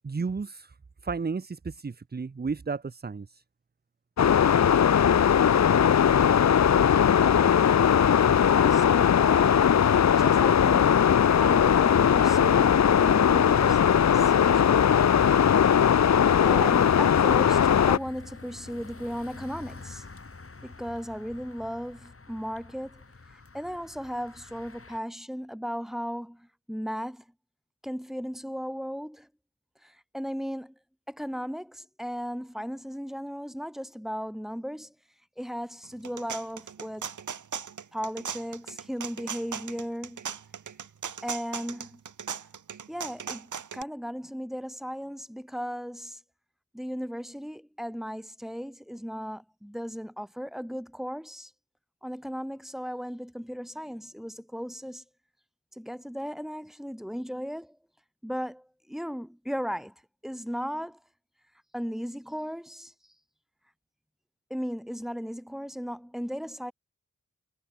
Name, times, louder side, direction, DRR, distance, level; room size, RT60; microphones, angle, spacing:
voice 1, 0.0-0.7 1.0-3.4, right 4 dB, 35° right, 0.8 m, -33 dB
sound 1, 4.2-18.0, left 8 dB, 65° left, 0.6 m, -20 dB
voice 2, 7.1-7.6 8.5-9.8 10.2-15.0 16.4-20.1 20.6-23.0 23.5-27.2 27.8-29.3 29.8-30.7 31.1-34.9 35.4-37.1 37.9-40.3 41.2-42.0 42.9-46.2 46.7-51.5 52.0-55.0 55.7-57.8 58.2-59.9 60.2-61.0 61.7-62.9 64.5-66.7, equal, ahead, 6.1 m, -36 dB
sound 2, 16.7-25.0, left 3 dB, 50° left, 6.1 m, -46 dB
sound 3, 35.8-43.8, right 7 dB, 85° right, 1.2 m, -38 dB
wide cardioid pair, 80°, 29 cm